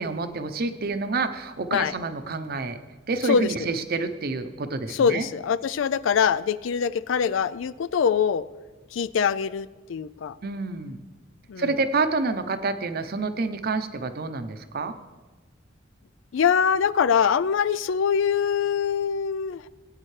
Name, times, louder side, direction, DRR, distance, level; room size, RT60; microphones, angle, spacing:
voice 1, 0.0-2.8 3.1-5.3 10.4-11.0 11.6-14.9, right 3 dB, 50° right, 9 dB, 0.7 m, -28 dB
voice 2, 4.9-8.5 8.9-10.4 11.5-11.7 16.3-19.6, left 7 dB, 75° left, 17 dB, 0.4 m, -23 dB
19.5 x 8.9 x 3.3 m, 1.3 s
head